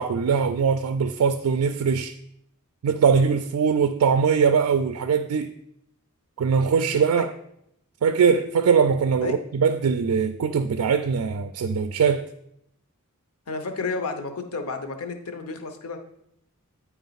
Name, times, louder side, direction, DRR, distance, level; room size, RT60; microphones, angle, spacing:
voice 1, 0.0-2.1 2.8-5.5 6.4-7.3 8.0-12.2, right 6 dB, 85° right, 0.4 m, -21 dB
voice 2, 13.5-16.0, left 4 dB, 75° left, 0.8 m, -31 dB
9.1 x 4.4 x 4.0 m
head